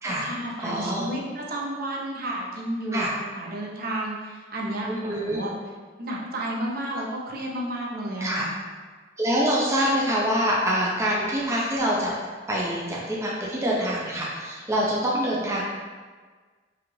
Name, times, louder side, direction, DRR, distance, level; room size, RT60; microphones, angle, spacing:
voice 1, 0.0-5.5 6.0-8.5, right 1 dB, 55° right, -2 dB, 0.7 m, -32 dB
voice 2, 0.6-1.1 2.9-3.1 4.9-5.4 8.2-8.4 9.2-12.1 12.5-15.6, equal, 15° right, -4 dB, 0.5 m, -25 dB
4.8 x 2.4 x 3.1 m, 1.5 s
head